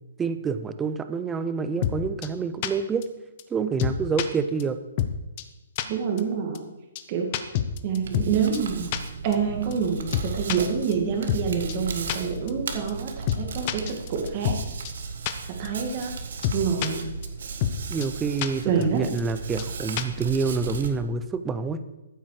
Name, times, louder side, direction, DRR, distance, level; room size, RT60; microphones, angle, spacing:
voice 1, 0.2-3.0 3.5-4.8 17.9-21.8, right 5 dB, 10° right, 11 dB, 0.5 m, -27 dB
sound 1, 1.8-2.0 2.2-2.3 2.6-2.7 3.0-3.1 3.4-3.5 3.8-4.3 4.6-4.7 5.0-5.1 5.4-5.5 5.8-5.9 6.2-6.3 6.5-6.6 7.0-7.1 7.3-8.3 8.5-8.6 8.9-9.0 9.3-9.4 9.7-9.8 10.1-10.6 10.9-11.0 11.3-11.4 11.7-11.8 12.1-12.2 12.5-12.6 12.9-13.0 13.3-13.4 13.7-14.6 14.8-14.9 15.3-15.4 15.6-15.7 16.0-16.1 16.4-16.9 17.2-17.3 17.6-17.7 18.0-18.1 18.4-18.5 18.8-18.9 19.2-19.3 19.6-19.7 20.0-20.2, left 11 dB, 30° left, 0.7 m, -26 dB
voice 2, 5.9-6.6 7.1-7.3 7.8-8.9 9.2-14.6 15.6-16.1 16.5-17.1 18.7-19.0, right 6 dB, 30° right, 2 dB, 1.8 m, -27 dB
Hands, 8.0-20.9, right 5 dB, 60° right, 1.5 m, -36 dB
14.0 x 8.0 x 4.8 m, 1.1 s
hypercardioid pair, 170°, 0 cm